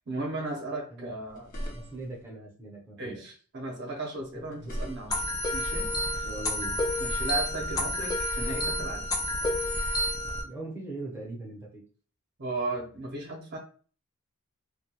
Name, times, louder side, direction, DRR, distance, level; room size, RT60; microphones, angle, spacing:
voice 1, 0.1-1.5 3.0-5.2 5.5-6.3 7.0-9.0 12.4-13.6, right 2 dB, 50° right, 1 dB, 0.6 m, -36 dB
sound 1, 1.3-2.2 4.2-5.4, equal, 40° left, 0.7 m, -39 dB
voice 2, 1.7-3.2 4.3-4.7 6.2-6.8 10.4-11.8, right 2 dB, 10° right, -3 dB, 0.6 m, -40 dB
sound 2, 5.1-10.4, left 1 dB, 20° left, 0.3 m, -29 dB
2.2 x 2.2 x 2.8 m, 0.41 s
head